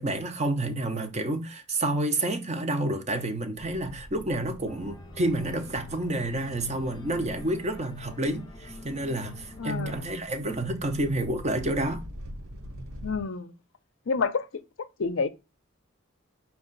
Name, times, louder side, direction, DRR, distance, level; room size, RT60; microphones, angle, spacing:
voice 1, 0.0-12.0, right 1 dB, 30° right, 0.6 m, -29 dB
sound 1, 3.6-13.2, equal, 75° right, 0.7 m, -45 dB
Organ, 4.6-10.0, left 2 dB, 20° left, 0.5 m, -46 dB
voice 2, 9.6-10.1 13.0-13.5 14.1-14.5 15.0-15.3, left 4 dB, 65° left, 0.5 m, -28 dB
5.3 x 2.3 x 3.8 m
head